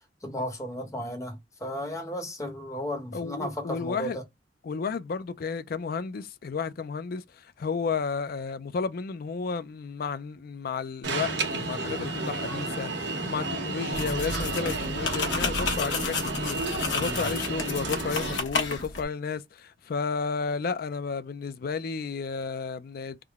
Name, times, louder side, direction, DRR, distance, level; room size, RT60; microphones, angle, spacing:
voice 1, 0.2-4.1 17.0-17.2, equal, 20° left, 1.0 m, -34 dB
voice 2, 3.1-4.2 4.6-23.2, left 5 dB, 55° left, 0.4 m, -32 dB
Alarm, 11.0-18.4, right 2 dB, 75° right, 1.3 m, -32 dB
sound 1, 13.9-19.0, left 4 dB, 85° left, 1.1 m, -31 dB
3.6 x 2.2 x 3.4 m
head